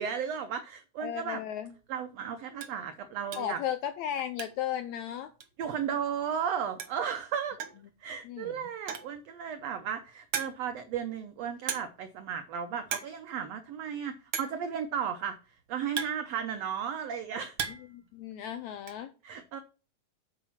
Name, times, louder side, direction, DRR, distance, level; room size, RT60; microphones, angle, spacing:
voice 1, 0.0-1.4 1.9-3.6 5.6-7.6 8.0-15.4 15.7-17.5 19.2-19.6, right 8 dB, 90° right, 9 dB, 1.4 m, -34 dB
voice 2, 1.0-1.7 3.3-5.3 8.2-8.6 17.7-19.1, left 10 dB, 85° left, 10 dB, 1.6 m, -35 dB
sound 1, 1.6-1.8 2.2-2.3 2.6-2.8 3.3-3.6 3.9-4.8 5.0-5.1 5.4-5.5 6.5-6.6 6.8-7.1 7.6-7.9 8.7-9.2 9.8-9.9 10.3-10.8 11.7-12.1 12.4-12.6 12.8-13.2 13.4-13.5 14.3-14.7 15.5-16.8 17.2-18.0 18.2-19.0, right 7 dB, 60° right, 1.5 m, -37 dB
8.7 x 5.0 x 7.2 m, 0.35 s
omnidirectional pair, 3.9 m